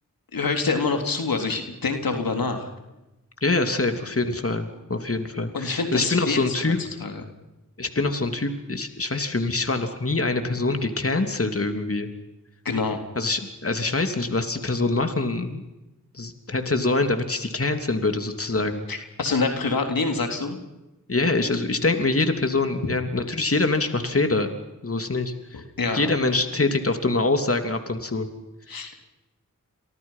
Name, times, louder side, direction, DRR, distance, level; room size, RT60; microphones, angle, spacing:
voice 1, 0.3-2.7 5.5-7.2 12.6-13.0 18.9-20.6 25.5-26.1 28.7-29.0, left 4 dB, 85° left, 5 dB, 3.6 m, -26 dB
voice 2, 3.4-6.8 7.8-12.1 13.1-15.6 16.1-18.8 21.1-24.5 24.8-25.6 25.9-28.3, left 3 dB, 40° left, 7 dB, 3.2 m, -24 dB
30.0 x 24.5 x 5.8 m, 1.0 s
cardioid pair, 40°, 34 cm